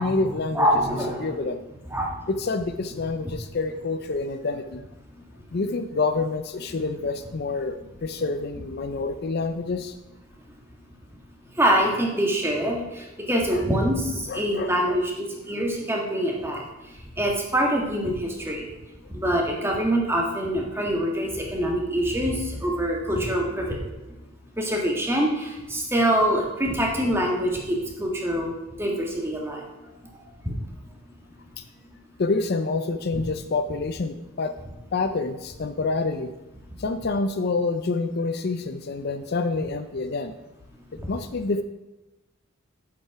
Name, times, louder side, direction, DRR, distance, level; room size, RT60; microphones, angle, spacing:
voice 1, 0.0-0.7 1.2-1.6 2.3-4.8 5.5-9.9 13.3-13.7 14.3-15.0 31.6-31.7 32.2-34.5 34.9-36.3 36.8-40.3 41.1-41.6, left 3 dB, 50° left, 9 dB, 0.5 m, -27 dB
voice 2, 0.5-1.3 1.9-2.1 11.6-12.8 13.3-16.6 17.2-18.7 19.1-23.8 24.6-28.5 28.8-29.6 30.4-30.5 33.1-33.2, right 1 dB, 10° right, 0 dB, 1.6 m, -24 dB
8.7 x 7.3 x 4.7 m, 1.0 s
head